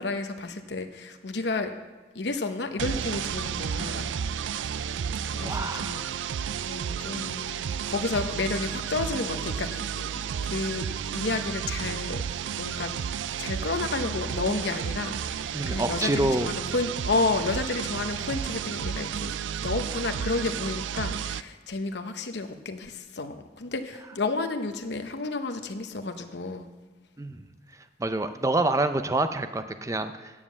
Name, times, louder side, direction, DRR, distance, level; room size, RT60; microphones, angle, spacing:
voice 1, 0.0-1.7 2.1-4.8 5.3-6.0 6.7-12.9 13.4-19.3 19.6-26.7, left 3 dB, 65° left, 7 dB, 0.9 m, -31 dB
sound 1, 2.8-21.4, right 8 dB, 85° right, 0.4 m, -32 dB
voice 2, 5.4-6.1 15.5-16.5 27.2-27.4 28.0-30.3, right 2 dB, 15° right, 9 dB, 0.5 m, -27 dB
9.7 x 7.4 x 7.1 m, 1.4 s
head